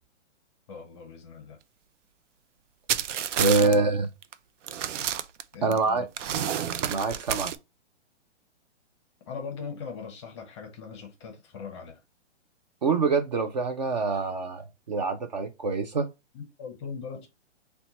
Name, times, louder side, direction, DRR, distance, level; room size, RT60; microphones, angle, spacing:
voice 1, 0.7-1.6 3.6-3.9 5.5-6.1 9.3-12.0 16.3-17.3, left 6 dB, 25° left, 0.6 m, -39 dB
sound 1, 2.9-3.7 4.2-4.3 4.7-5.8 6.2-7.5, right 9 dB, 90° right, 0.5 m, -29 dB
voice 2, 3.4-4.1 5.6-6.1 6.9-7.5 12.8-16.1, right 4 dB, 40° right, 0.4 m, -25 dB
4.2 x 2.2 x 3.9 m
hypercardioid pair, 160°, 35 cm